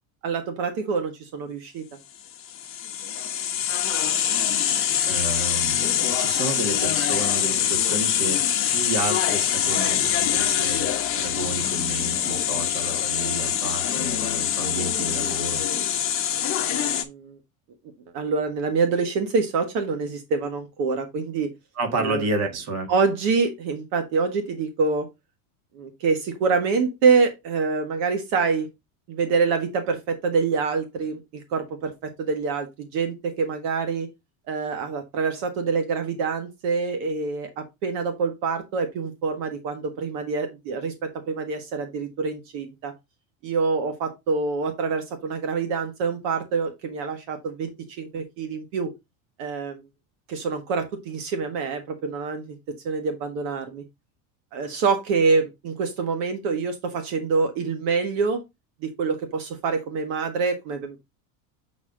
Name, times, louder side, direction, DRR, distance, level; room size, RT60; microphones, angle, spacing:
voice 1, 0.2-1.8 16.6-17.4 18.1-21.5 22.0-22.3 22.9-25.1 25.7-28.7 29.1-34.1 34.5-42.9 43.4-48.9 49.4-49.8 50.3-52.6 52.8-53.8 54.5-58.4 58.8-61.0, right 4 dB, 65° right, 1.5 m, -26 dB
sound 1, 2.3-17.0, left 10 dB, 30° left, 1.0 m, -24 dB
voice 2, 4.4-8.4 8.7-15.6 21.8-22.9, right 2 dB, 35° right, 1.9 m, -31 dB
7.9 x 4.3 x 3.7 m
cardioid pair, 150°, 43 cm